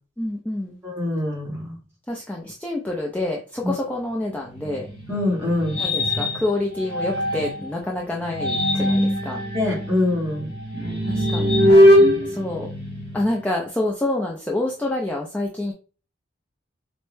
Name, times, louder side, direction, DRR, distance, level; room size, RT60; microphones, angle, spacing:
voice 1, 0.2-0.8 2.1-4.9 5.8-9.4 11.1-11.6 12.2-12.7 13.1-15.7, left 2 dB, 10° left, -1 dB, 0.4 m, -27 dB
voice 2, 0.8-1.8 3.6-3.7 5.1-5.7 9.5-10.5, left 2 dB, 15° right, -4 dB, 1.4 m, -24 dB
sound 1, 4.5-7.7 8.2-13.4, equal, 30° left, 1.1 m, -21 dB
4.3 x 2.0 x 3.1 m, 0.36 s
head